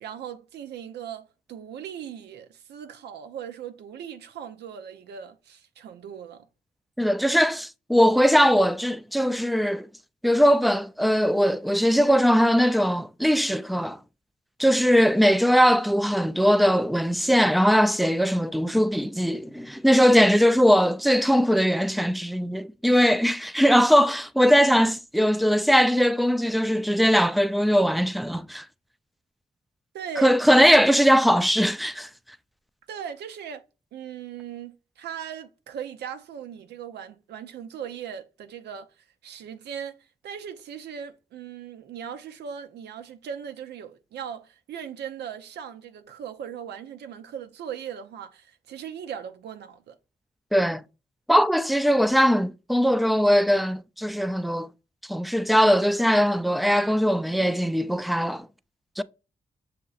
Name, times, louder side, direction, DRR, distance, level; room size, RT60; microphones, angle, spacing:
voice 1, 0.0-6.5 29.9-30.4 32.9-33.6 33.9-38.9 39.2-50.0, right 8 dB, 90° right, 0.5 m, -38 dB
voice 2, 7.0-9.9 10.2-14.0 14.6-28.7 30.2-32.1 50.5-50.8 51.3-54.7 55.1-58.5 59.0-59.1, equal, ahead, 0.3 m, -20 dB
6.4 x 2.9 x 2.4 m
supercardioid pair, 45°, 17 cm